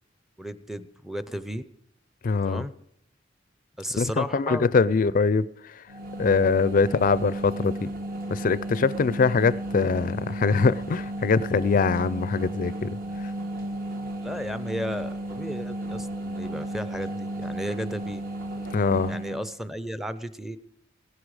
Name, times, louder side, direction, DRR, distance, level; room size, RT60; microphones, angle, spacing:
voice 1, 0.4-1.6 2.4-2.7 3.8-4.7 6.8-7.0 14.2-18.2 19.1-20.6, equal, ahead, 0.6 m, -34 dB
voice 2, 2.2-2.6 4.0-5.5 6.2-7.9 8.3-13.0 18.7-19.1, left 4 dB, 45° left, 0.4 m, -23 dB
sound 1, 5.9-19.5, right 1 dB, 50° right, 1.5 m, -34 dB
16.5 x 11.5 x 4.9 m
head